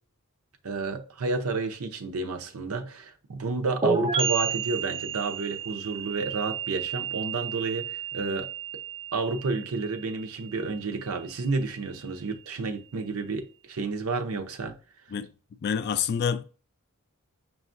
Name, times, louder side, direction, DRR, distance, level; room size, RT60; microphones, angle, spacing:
voice 1, 0.6-8.5 9.1-14.7, right 3 dB, 80° right, 0.6 m, -30 dB
sound 1, 3.8-11.4, right 5 dB, 25° right, 0.5 m, -32 dB
voice 2, 15.6-16.4, left 7 dB, 45° left, 0.3 m, -27 dB
6.1 x 2.3 x 2.5 m
head